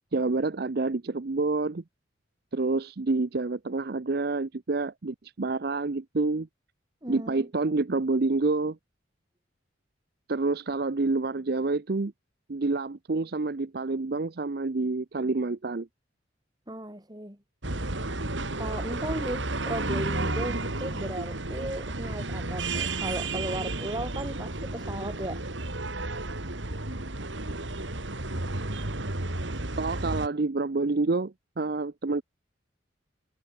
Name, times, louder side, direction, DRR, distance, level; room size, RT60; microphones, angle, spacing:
voice 1, 0.1-1.8 2.5-6.5 7.1-8.8 10.3-12.1 12.5-15.9 29.8-32.2, right 3 dB, 55° right, 0.6 m, -28 dB
voice 2, 7.0-7.5 16.7-17.4 18.6-25.4, right 1 dB, 20° right, 6.6 m, -36 dB
sound 1, 17.6-30.3, right 2 dB, 85° right, 3.1 m, -32 dB
head